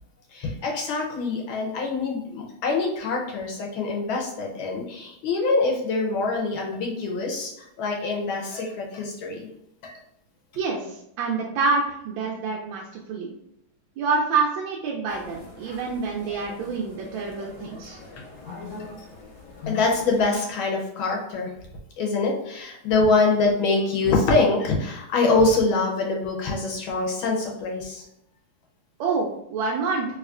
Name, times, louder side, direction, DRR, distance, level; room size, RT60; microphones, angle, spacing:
voice 1, 0.3-7.5 7.8-9.5 9.8-9.9 19.7-21.5 22.0-28.0, left 3 dB, 75° left, 0 dB, 1.4 m, -24 dB
voice 2, 10.6-13.3 14.0-18.0 29.0-30.1, right 4 dB, 75° right, -2 dB, 1.2 m, -27 dB
sound 1, 15.1-20.2, left 3 dB, 60° left, 1.2 m, -41 dB
3.5 x 3.1 x 2.4 m, 0.78 s
omnidirectional pair, 2.3 m